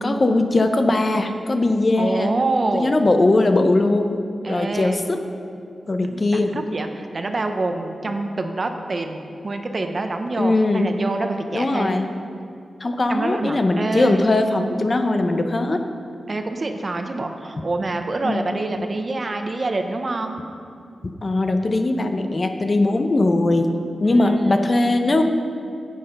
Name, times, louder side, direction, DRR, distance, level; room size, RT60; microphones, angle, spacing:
voice 1, 0.0-2.3 2.7-4.2 4.5-5.2 5.9-6.5 10.4-10.9 11.5-12.1 12.8-15.8 18.2-18.4 18.8-18.9 21.2-23.7 24.0-25.2, left 2 dB, 35° left, 6 dB, 0.6 m, -20 dB
voice 2, 2.0-3.0 4.4-5.0 6.0-11.9 13.1-14.2 16.3-20.4 24.0-24.7, right 2 dB, 40° right, 6 dB, 0.7 m, -26 dB
9.5 x 8.0 x 5.3 m, 2.4 s
wide cardioid pair, 115°, 0 cm